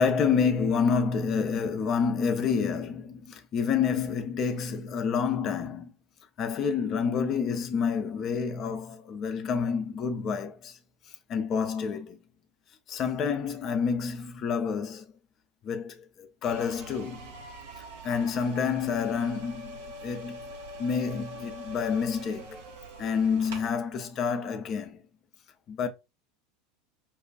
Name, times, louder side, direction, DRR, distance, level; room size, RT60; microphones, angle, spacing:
voice 1, 0.0-5.9 6.4-10.8 11.1-12.2 12.9-15.1 15.6-17.3 17.8-20.4 20.8-22.6 23.0-25.0 25.7-25.9, left 6 dB, 40° left, 0.6 m, -28 dB
sound 1, 16.4-23.7, right 1 dB, 65° right, 0.8 m, -43 dB
5.3 x 2.3 x 2.4 m
figure-of-eight pair, 75°, 0 cm